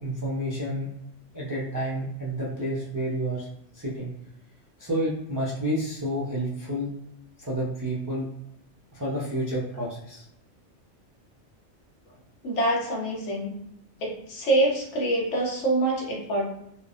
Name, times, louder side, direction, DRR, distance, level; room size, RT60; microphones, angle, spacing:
voice 1, 0.0-0.9 1.3-3.5 3.7-4.1 4.8-6.9 7.4-8.3 8.9-10.2, right 1 dB, 30° right, -6 dB, 0.3 m, -30 dB
voice 2, 12.4-13.5 14.0-16.5, right 1 dB, 75° left, -1 dB, 1.1 m, -25 dB
3.1 x 2.1 x 2.5 m, 0.78 s
omnidirectional pair, 1.2 m